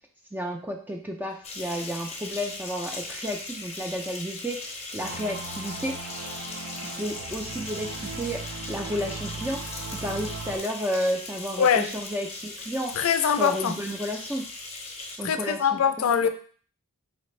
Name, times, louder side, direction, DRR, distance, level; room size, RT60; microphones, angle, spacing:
voice 1, 0.3-6.0 6.8-9.6 9.9-12.9 13.4-14.5 15.2-16.3, equal, 10° right, 3 dB, 0.3 m, -32 dB
sound 1, 1.4-15.2, left 3 dB, 30° left, 0.6 m, -39 dB
sound 2, 5.0-10.6, right 3 dB, 70° right, 0.6 m, -38 dB
voice 2, 11.6-11.9 13.0-13.8 15.2-16.3, left 7 dB, 75° left, 10 dB, 0.4 m, -23 dB
4.1 x 2.5 x 3.1 m, 0.43 s
head